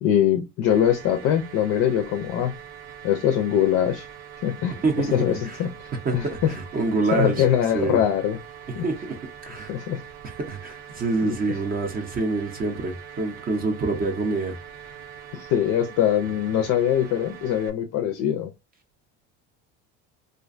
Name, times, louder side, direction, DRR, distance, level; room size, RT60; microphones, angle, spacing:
voice 1, 0.0-2.5 3.0-4.1 4.4-5.7 6.1-6.5 7.1-8.4 8.8-8.9 9.7-10.0 11.2-11.3 15.3-18.5, left 10 dB, 50° left, 0.4 m, -22 dB
sound 1, 0.7-17.7, right 8 dB, 80° right, 0.5 m, -43 dB
voice 2, 4.8-5.6 6.0-7.4 7.7-8.0 8.8-9.7 10.2-14.6, right 3 dB, 25° right, 0.6 m, -26 dB
2.4 x 2.1 x 2.4 m
cardioid pair, 130°, 34 cm